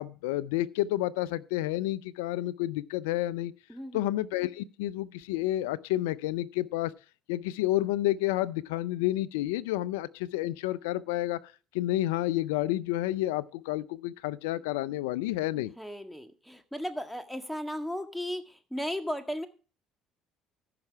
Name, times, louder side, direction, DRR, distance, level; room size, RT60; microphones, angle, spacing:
voice 1, 0.0-3.5 3.9-6.9 7.3-11.4 11.7-15.7, left 15 dB, 85° left, 0.5 m, -30 dB
voice 2, 3.7-4.1 15.8-19.5, equal, 5° left, 1.7 m, -36 dB
14.5 x 5.9 x 4.6 m
hypercardioid pair, 65°, 0 cm